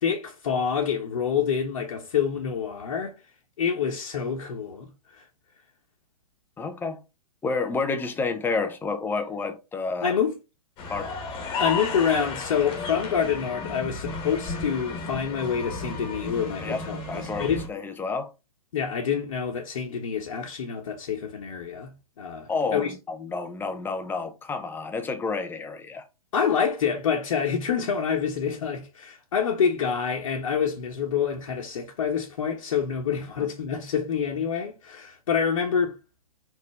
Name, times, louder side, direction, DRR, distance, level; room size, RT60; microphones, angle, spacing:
voice 1, 0.0-3.1 3.6-5.2 10.0-10.3 11.6-17.6 18.7-21.9 22.2-22.9 26.3-35.9, left 7 dB, 55° left, 1.3 m, -27 dB
voice 2, 6.6-7.0 7.4-10.1 10.9-11.1 16.6-16.8 17.1-18.3 22.5-26.0, left 4 dB, 10° left, 0.8 m, -30 dB
sound 1, 10.8-17.7, left 4 dB, 25° left, 1.9 m, -33 dB
5.3 x 3.8 x 5.0 m
figure-of-eight pair, 115°, 19 cm